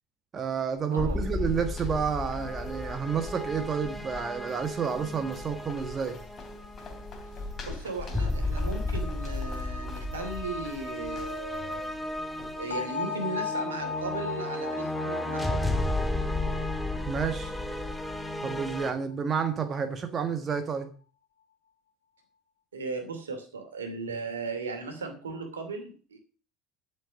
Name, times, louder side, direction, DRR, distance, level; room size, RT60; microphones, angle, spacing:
voice 1, 0.3-6.2 17.1-17.5 18.4-20.9, right 6 dB, 35° right, 1.5 m, -30 dB
sound 1, 0.8-12.9, left 3 dB, 35° left, 3.2 m, -43 dB
voice 2, 0.9-1.4 7.6-12.0 12.6-15.7 22.7-26.2, right 3 dB, 80° right, 2.6 m, -37 dB
sound 2, 1.0-18.9, left 2 dB, 5° left, 1.7 m, -33 dB
sound 3, 12.7-18.5, left 6 dB, 85° left, 1.3 m, -37 dB
12.0 x 7.1 x 6.2 m
figure-of-eight pair, 65°, 0 cm